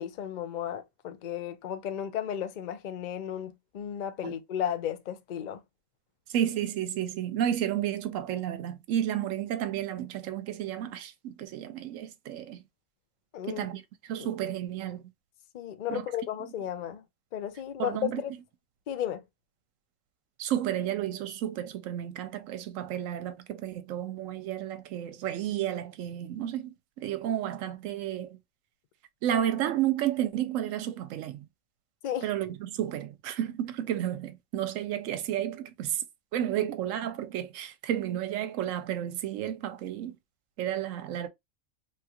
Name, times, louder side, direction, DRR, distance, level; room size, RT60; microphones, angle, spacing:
voice 1, 0.0-5.6 13.3-13.7 14.2-14.5 15.5-17.0 17.3-18.3 18.9-19.2 32.0-32.3, left 10 dB, 70° left, 0.4 m, -34 dB
voice 2, 6.3-12.6 13.5-15.1 15.9-16.0 17.8-18.2 20.4-28.4 29.2-31.5 32.2-36.0 36.3-40.2 40.6-41.3, right 11 dB, 75° right, 1.0 m, -32 dB
3.4 x 2.4 x 2.8 m
omnidirectional pair, 1.4 m